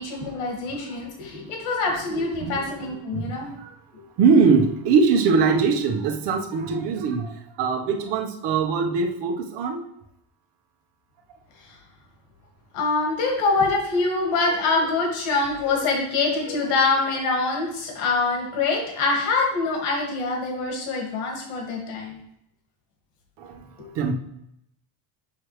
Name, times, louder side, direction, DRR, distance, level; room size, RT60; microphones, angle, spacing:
voice 1, 0.0-3.5 12.7-22.2 23.8-23.9, left 3 dB, 85° left, 0 dB, 2.4 m, -25 dB
voice 2, 3.1-3.7 4.2-9.8 23.4-23.7 23.9-24.1, right 5 dB, 60° right, 3 dB, 1.3 m, -22 dB
7.2 x 6.3 x 3.3 m, 0.76 s
cardioid pair, 160°, 47 cm